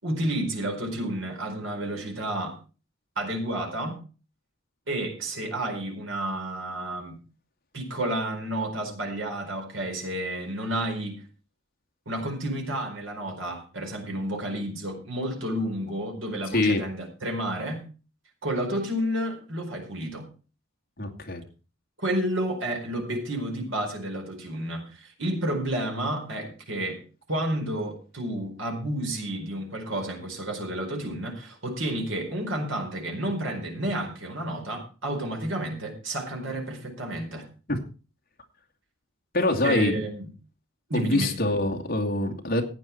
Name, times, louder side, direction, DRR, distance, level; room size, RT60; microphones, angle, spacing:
voice 1, 0.0-2.6 3.2-4.0 4.9-7.2 7.7-11.2 12.1-17.8 18.4-20.3 22.0-27.0 27.3-37.5 39.6-40.3 40.9-41.3, right 1 dB, 75° right, 3 dB, 4.7 m, -31 dB
voice 2, 21.0-21.4 37.7-37.8 39.3-40.0 40.9-42.6, left 2 dB, 45° left, 3 dB, 2.5 m, -24 dB
15.5 x 9.4 x 4.5 m, 0.34 s
head